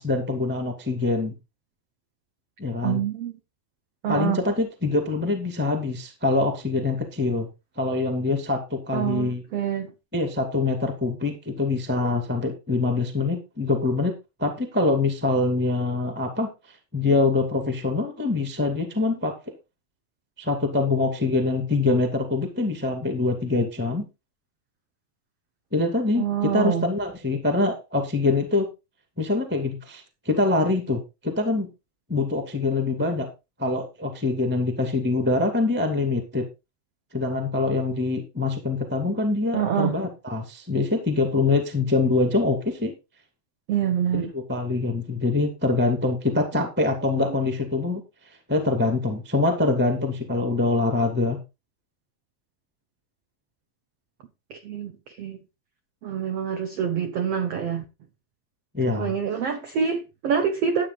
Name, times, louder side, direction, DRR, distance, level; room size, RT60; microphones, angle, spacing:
voice 1, 0.0-1.3 2.6-3.0 4.1-7.5 7.8-9.4 10.1-14.1 14.4-19.3 20.4-24.1 25.7-28.7 29.2-31.7 32.1-33.3 33.6-36.5 37.1-42.9 44.1-48.0 48.5-51.4 58.7-59.1, left 3 dB, 5° right, 1.2 m, -24 dB
voice 2, 2.8-3.3 4.0-4.4 8.9-9.9 26.2-26.9 39.5-39.9 43.7-44.3 47.3-47.4 54.5-55.4 56.0-57.8 58.8-60.9, right 8 dB, 65° right, 1.5 m, -26 dB
12.5 x 8.4 x 4.1 m
omnidirectional pair, 4.4 m